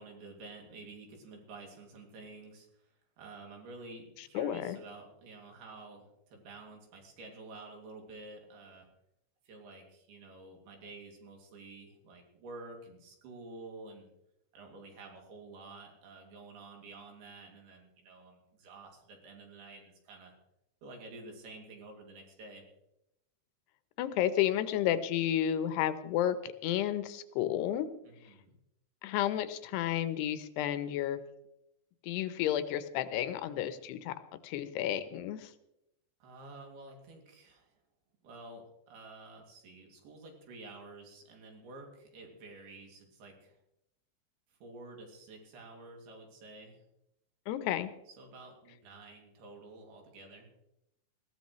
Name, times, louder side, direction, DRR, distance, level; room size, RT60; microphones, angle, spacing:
voice 1, 0.0-8.9 9.5-14.1 14.5-20.3 20.8-22.6 28.0-28.6 36.2-37.8 38.2-43.6 44.6-46.8 48.1-50.5, right 2 dB, 70° right, 2 dB, 4.4 m, -50 dB
voice 2, 4.3-4.8 24.0-27.9 29.0-31.2 32.0-34.2 34.4-35.5 47.5-47.9, left 11 dB, 80° left, 12 dB, 2.8 m, -31 dB
20.0 x 15.0 x 3.1 m, 0.84 s
omnidirectional pair, 4.8 m